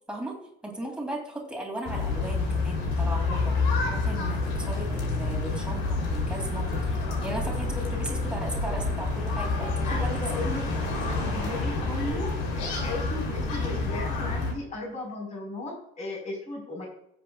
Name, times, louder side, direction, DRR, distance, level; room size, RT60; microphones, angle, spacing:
voice 1, 0.6-10.6, right 1 dB, 5° right, -1 dB, 2.6 m, -37 dB
sound 1, 1.8-14.5, left 3 dB, 85° left, 3.3 m, -28 dB
voice 2, 9.8-10.6 11.1-16.9, left 2 dB, 35° left, 0 dB, 4.5 m, -36 dB
17.0 x 7.8 x 2.4 m, 0.74 s
cardioid pair, 150°, 21 cm